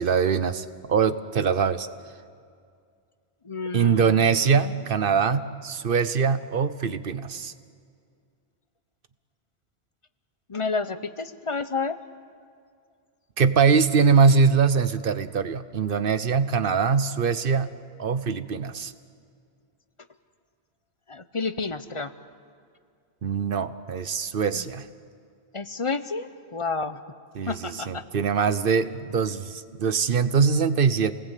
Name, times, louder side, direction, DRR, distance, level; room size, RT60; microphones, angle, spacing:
voice 1, 0.0-1.9 3.7-7.5 13.4-17.7 18.0-18.9 23.2-24.9 27.3-31.1, right 6 dB, 60° right, 13 dB, 1.0 m, -23 dB
voice 2, 3.4-4.3 10.5-12.0 21.1-22.1 24.5-24.7 25.5-27.0 27.5-28.0, left 4 dB, 30° left, 11 dB, 0.8 m, -30 dB
28.5 x 19.5 x 8.3 m, 2.2 s
omnidirectional pair, 1.1 m